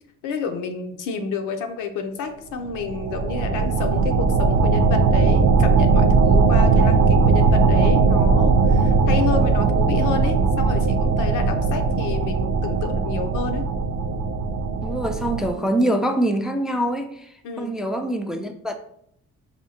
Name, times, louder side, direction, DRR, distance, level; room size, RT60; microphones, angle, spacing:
voice 1, 0.2-13.7 17.4-17.8, left 5 dB, 85° left, 6 dB, 0.6 m, -29 dB
sound 1, 2.7-15.5, right 4 dB, 80° right, 0.5 m, -19 dB
voice 2, 14.8-17.3 17.6-18.7, right 1 dB, ahead, 5 dB, 0.3 m, -24 dB
4.3 x 2.7 x 2.7 m, 0.71 s
cardioid pair, 90°, 30 cm